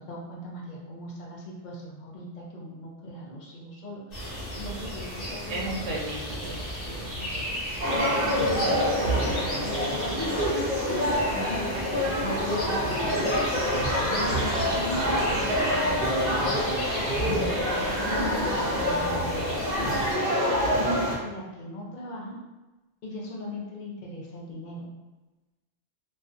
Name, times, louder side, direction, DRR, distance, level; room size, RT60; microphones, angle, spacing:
voice 1, 0.0-4.3 4.6-5.9 7.8-10.3 11.4-16.5 18.0-20.0 20.8-22.4 23.0-24.9, left 1 dB, 55° left, -3 dB, 0.6 m, -38 dB
sound 1, 4.1-20.2, equal, 35° left, 1.0 m, -35 dB
voice 2, 5.5-7.5 8.6-8.7 11.3-11.4 17.7-18.1, right 2 dB, 85° right, -3 dB, 1.0 m, -36 dB
sound 2, 7.8-21.2, equal, 45° right, 0.6 m, -26 dB
2.5 x 2.3 x 2.4 m, 1.1 s
omnidirectional pair, 1.2 m